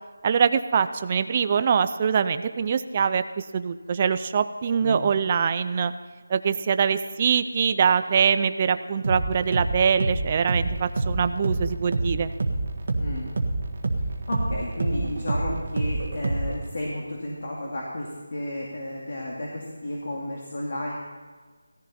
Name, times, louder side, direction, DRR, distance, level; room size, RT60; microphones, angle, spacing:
voice 1, 0.2-5.9 6.3-12.3, right 6 dB, 20° right, 11 dB, 0.4 m, -23 dB
sound 1, 9.0-16.7, right 2 dB, 40° right, 1.5 m, -27 dB
voice 2, 13.0-13.3 14.3-20.9, left 1 dB, 45° left, -3 dB, 2.3 m, -32 dB
16.5 x 14.5 x 4.2 m, 1.4 s
figure-of-eight pair, 180°, 0 cm